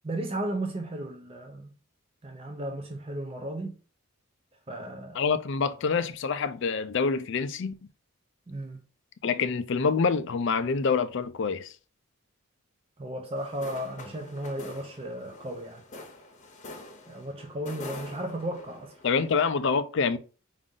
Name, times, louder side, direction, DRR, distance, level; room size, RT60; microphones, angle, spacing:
voice 1, 0.0-1.7 2.2-3.8 4.7-5.2 8.5-8.8 13.0-15.9 17.1-19.0, right 1 dB, 25° right, 0.5 m, -35 dB
voice 2, 5.1-7.7 9.2-11.7 19.0-20.2, left 5 dB, 55° left, 0.4 m, -26 dB
sound 1, 13.3-19.4, left 2 dB, 35° left, 0.8 m, -45 dB
4.9 x 2.6 x 3.7 m
head